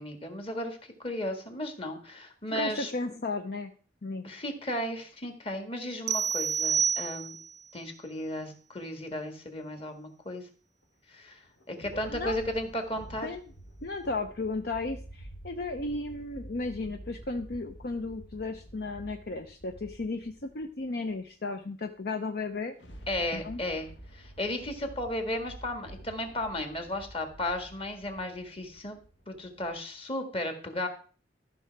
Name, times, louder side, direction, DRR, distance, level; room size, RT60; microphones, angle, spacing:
voice 1, 0.0-2.9 4.2-7.3 7.7-10.4 11.1-13.3 23.1-29.0 29.3-30.9, left 1 dB, 30° left, 6 dB, 1.6 m, -35 dB
voice 2, 2.5-3.7 4.0-4.2 11.9-12.4 13.2-13.4 13.8-22.7 23.3-23.6, left 3 dB, 55° left, 6 dB, 0.7 m, -34 dB
sound 1, 6.1-7.6, right 7 dB, 40° right, 0.3 m, -28 dB
sound 2, 10.8-10.9 11.4-21.2 22.4-29.7, right 1 dB, 80° left, 1.6 m, -49 dB
13.0 x 5.9 x 4.6 m, 0.41 s
head